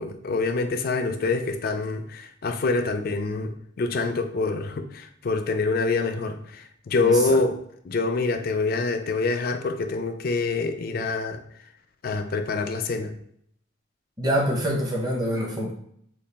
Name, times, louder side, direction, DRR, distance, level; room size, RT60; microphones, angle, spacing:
voice 1, 0.0-7.6 7.8-11.4 12.0-13.1, left 3 dB, 50° left, 7 dB, 0.4 m, -26 dB
voice 2, 14.2-15.7, equal, 20° right, -2 dB, 0.7 m, -25 dB
3.9 x 2.3 x 3.3 m, 0.68 s
head